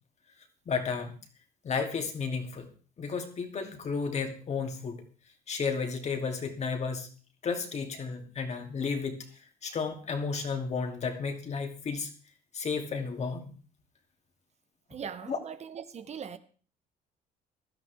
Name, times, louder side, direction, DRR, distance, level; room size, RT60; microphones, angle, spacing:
voice 1, 0.7-1.1 1.6-2.7 3.0-5.0 5.5-7.1 7.4-12.1 12.5-13.5 15.3-15.4, left 5 dB, 40° left, 2.6 m, -33 dB
voice 2, 14.9-16.4, right 7 dB, 40° right, 1.0 m, -40 dB
16.5 x 12.0 x 3.5 m
cardioid pair, 110°, 17 cm